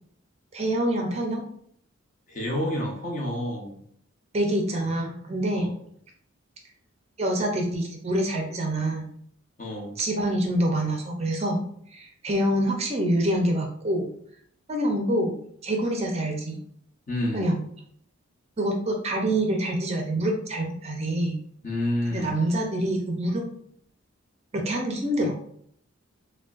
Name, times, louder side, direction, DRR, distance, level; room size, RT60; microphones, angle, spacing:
voice 1, 0.5-1.4 4.3-5.7 7.2-9.0 10.0-11.6 11.9-14.1 14.7-15.3 15.6-16.6 17.3-17.6 18.6-21.4 22.1-23.5 24.5-25.4, right 1 dB, 30° right, 2 dB, 0.5 m, -26 dB
voice 2, 2.3-3.8 5.6-5.7 9.6-10.0 17.1-17.5 21.6-22.3, left 1 dB, 35° left, -1 dB, 0.8 m, -29 dB
5.0 x 2.2 x 2.4 m, 0.64 s
head